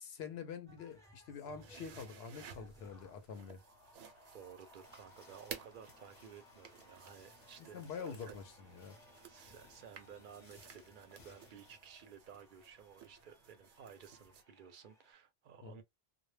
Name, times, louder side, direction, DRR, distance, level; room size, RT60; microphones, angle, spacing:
voice 1, 0.0-3.6 7.6-9.0 15.6-15.8, left 6 dB, 80° left, 0.8 m, -46 dB
sound 1, 0.7-15.1, equal, 5° left, 0.7 m, -63 dB
sound 2, 1.5-14.4, right 7 dB, 85° right, 0.9 m, -56 dB
voice 2, 4.3-8.4 9.3-15.8, right 8 dB, 60° right, 0.6 m, -55 dB
sound 3, 4.8-11.8, left 2 dB, 40° left, 0.6 m, -64 dB
2.2 x 2.0 x 3.1 m
omnidirectional pair, 1.1 m